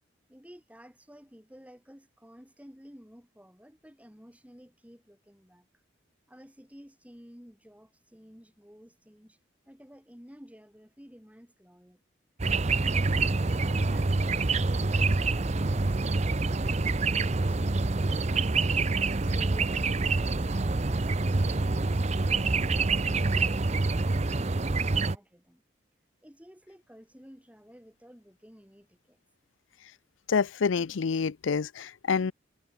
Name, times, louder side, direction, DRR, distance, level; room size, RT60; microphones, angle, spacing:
voice 1, 0.3-5.7 6.3-9.4 9.7-12.0 23.2-25.6 26.2-29.2, equal, 5° right, 6.3 m, -53 dB
sound 1, 12.4-25.2, right 3 dB, 35° right, 0.7 m, -26 dB
voice 2, 30.3-32.3, left 5 dB, 85° left, 0.5 m, -27 dB
head